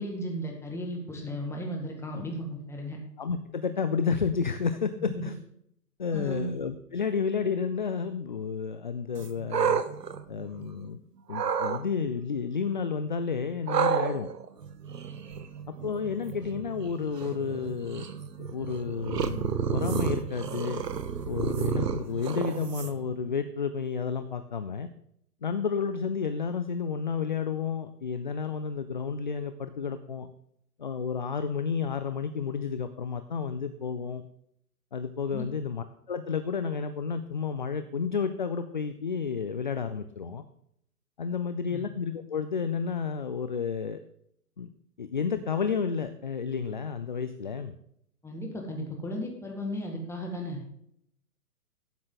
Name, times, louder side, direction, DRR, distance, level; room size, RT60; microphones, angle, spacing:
voice 1, 0.0-3.0 5.1-5.3 6.1-6.5 35.3-35.4 41.7-41.8 48.2-50.6, equal, 5° left, 1 dB, 1.9 m, -35 dB
voice 2, 3.2-5.4 6.0-9.8 10.3-11.0 11.3-14.3 15.7-18.1 18.4-20.8 21.3-24.9 25.4-30.3 30.8-34.2 34.9-40.4 41.2-44.0 44.6-44.7 45.0-47.7, left 6 dB, 35° left, 10 dB, 0.4 m, -31 dB
sound 1, 9.2-10.9 11.3-11.8 13.7-23.1, right 7 dB, 85° right, 1.1 m, -31 dB
12.0 x 8.6 x 3.9 m, 0.72 s
hypercardioid pair, 135°, 47 cm